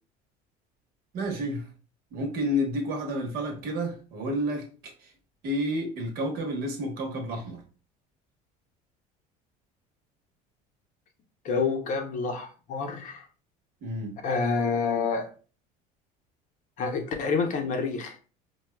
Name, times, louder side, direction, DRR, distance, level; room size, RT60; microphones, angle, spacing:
voice 1, 1.1-1.7 2.1-4.7 5.0-5.1 5.4-7.6 13.8-14.2, equal, 60° right, 1.1 m, -30 dB
voice 2, 11.4-13.3 14.2-15.3 16.8-18.2, left 5 dB, 45° left, 0.7 m, -28 dB
4.5 x 2.3 x 2.2 m
cardioid pair, 140°, 18 cm